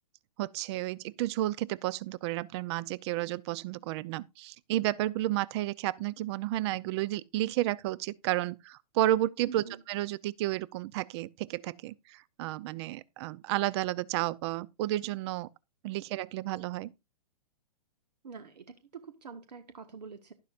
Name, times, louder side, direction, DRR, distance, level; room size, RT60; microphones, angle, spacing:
voice 1, 0.4-15.5 15.8-16.9, right 15 dB, 40° right, 0.6 m, -32 dB
voice 2, 9.4-9.8 18.2-20.3, right 5 dB, 85° right, 1.5 m, -46 dB
11.5 x 11.5 x 2.5 m
hypercardioid pair, 130°, 21 cm